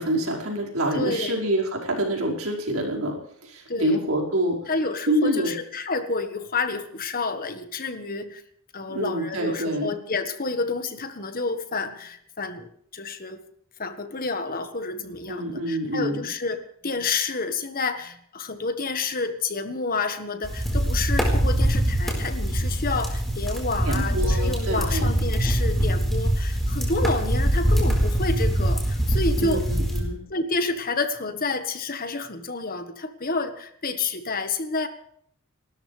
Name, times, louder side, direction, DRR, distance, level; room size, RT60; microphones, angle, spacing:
voice 1, 0.0-4.6 5.1-5.5 8.9-9.9 15.3-16.2 23.9-25.1 29.4-30.2, right 1 dB, 65° right, -1 dB, 5.2 m, -26 dB
voice 2, 0.9-1.4 3.7-4.0 4.7-8.4 8.7-13.4 13.8-29.7 30.3-34.9, left 3 dB, 40° left, 8 dB, 1.5 m, -29 dB
sound 1, 20.4-30.0, right 1 dB, ahead, 4.5 m, -23 dB
29.0 x 13.5 x 3.4 m, 0.66 s
head